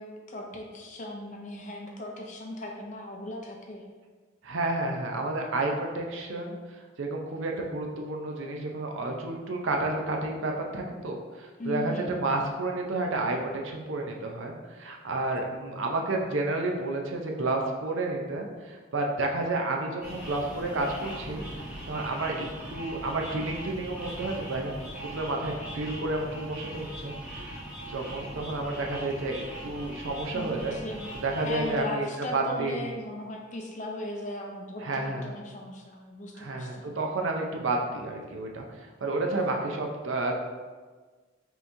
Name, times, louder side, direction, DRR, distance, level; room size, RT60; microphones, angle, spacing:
voice 1, 0.0-3.8 11.6-12.1 30.3-31.1 31.4-36.8, left 1 dB, 35° left, 1 dB, 0.5 m, -38 dB
voice 2, 4.4-6.6 7.0-21.4 21.9-24.7 25.0-27.1 27.4-27.6 27.9-30.7 31.2-32.1 32.3-32.8 34.8-35.4 36.4-40.4, right 2 dB, 65° right, 1 dB, 0.5 m, -31 dB
sound 1, 20.0-31.8, right 1 dB, 5° right, 0.8 m, -40 dB
5.5 x 2.9 x 2.6 m, 1.4 s
head